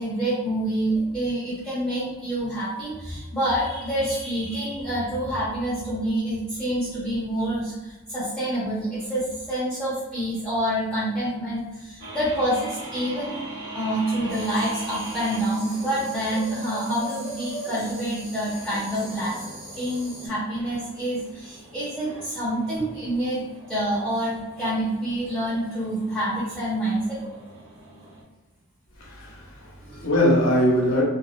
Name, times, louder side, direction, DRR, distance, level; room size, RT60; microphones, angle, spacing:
voice 1, 0.0-13.4 13.7-19.4 19.8-23.4 23.7-27.2 29.8-30.1, right 1 dB, ahead, -11 dB, 0.6 m, -27 dB
sound 1, 12.0-28.2, right 2 dB, 70° right, 0.8 m, -40 dB
sound 2, 14.3-20.3, right 1 dB, 30° right, 0.9 m, -43 dB
voice 2, 29.0-31.0, equal, 70° left, -3 dB, 0.6 m, -22 dB
2.4 x 2.1 x 2.5 m, 1.1 s
head